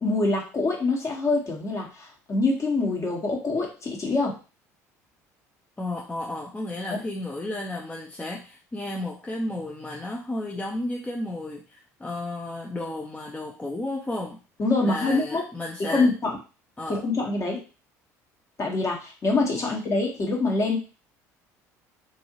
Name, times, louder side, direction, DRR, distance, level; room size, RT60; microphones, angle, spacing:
voice 1, 0.0-4.3 6.9-7.0 14.6-15.4 15.9-16.4 16.9-17.6 18.6-20.8, left 3 dB, 35° left, 0 dB, 1.2 m, -25 dB
voice 2, 5.8-14.4 14.8-16.1 16.8-17.0 19.5-19.7, left 1 dB, 15° left, -1 dB, 0.5 m, -33 dB
2.6 x 2.6 x 2.9 m, 0.33 s
hypercardioid pair, 70°, 8 cm